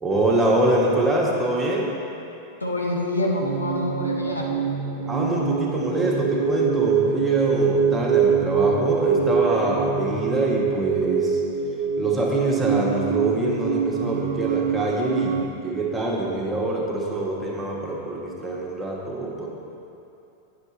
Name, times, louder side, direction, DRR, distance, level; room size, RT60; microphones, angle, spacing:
voice 1, 0.0-2.0 5.1-11.4 12.0-19.5, right 2 dB, 10° right, -3 dB, 1.3 m, -24 dB
voice 2, 2.6-4.5, left 1 dB, 80° left, -2 dB, 0.9 m, -26 dB
sound 1, 3.4-15.5, right 6 dB, 50° right, 0.4 m, -24 dB
9.7 x 5.8 x 4.1 m, 2.8 s
figure-of-eight pair, 90°, 0 cm